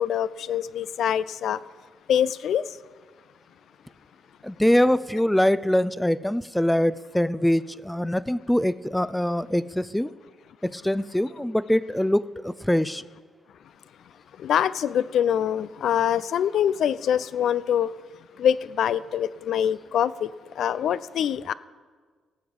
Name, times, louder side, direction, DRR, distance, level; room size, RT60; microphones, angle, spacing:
voice 1, 0.0-1.6 2.1-2.6 14.4-17.9 18.4-20.3 20.6-21.5, left 9 dB, 70° left, 0.4 m, -24 dB
voice 2, 4.4-10.1 10.6-13.0, left 1 dB, 5° left, 0.4 m, -23 dB
17.0 x 7.9 x 5.2 m
cardioid pair, 90°, 0 cm